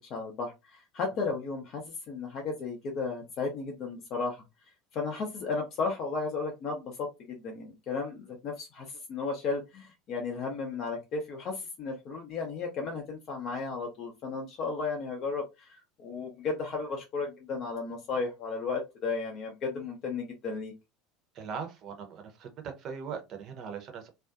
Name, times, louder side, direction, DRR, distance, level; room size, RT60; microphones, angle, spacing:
voice 1, 0.0-4.4 4.9-20.7, left 4 dB, 45° left, 1 dB, 0.5 m, -34 dB
voice 2, 21.3-24.1, right 6 dB, 40° right, 5 dB, 0.7 m, -40 dB
2.5 x 2.2 x 2.4 m, 0.24 s
figure-of-eight pair, 70°, 0 cm